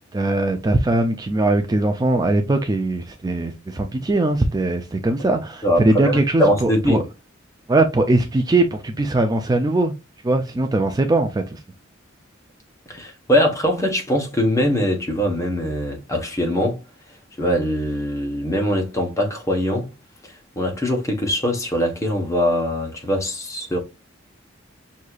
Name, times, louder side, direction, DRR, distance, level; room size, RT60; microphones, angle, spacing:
voice 1, 0.1-7.0 7.7-9.9 10.2-11.6, right 2 dB, 20° right, 0.4 m, -20 dB
voice 2, 5.6-7.0 12.9-16.8 17.4-19.9 20.6-23.8, equal, 15° left, 1.0 m, -22 dB
6.2 x 2.8 x 2.4 m
head